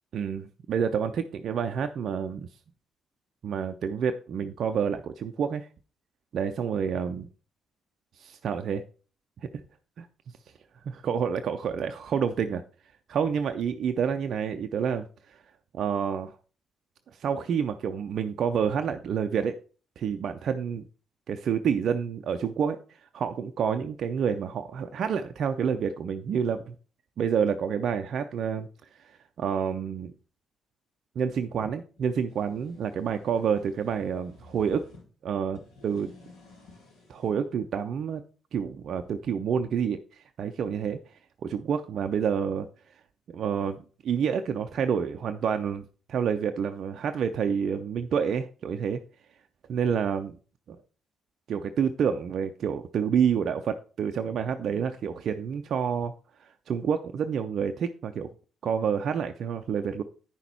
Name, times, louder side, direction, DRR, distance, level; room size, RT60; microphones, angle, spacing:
voice 1, 0.1-2.5 3.4-5.7 6.3-7.3 8.2-8.8 9.4-9.6 10.0-10.1 10.9-12.6 13.1-15.4 15.7-16.3 17.1-19.6 20.0-20.8 21.3-26.8 27.2-28.7 29.0-30.1 31.2-34.8 35.2-36.1 37.1-38.2 38.5-41.0 41.4-42.7 43.3-45.8 46.1-49.0 49.7-50.4 50.7-50.8 51.5-56.1 56.4-58.3 58.6-60.0, right 7 dB, 55° right, 7 dB, 0.4 m, -28 dB
sound 1, 32.0-35.0 35.5-37.4, left 2 dB, 70° left, 2.1 m, -53 dB
8.9 x 5.9 x 4.2 m, 0.37 s
figure-of-eight pair, 40°, 0 cm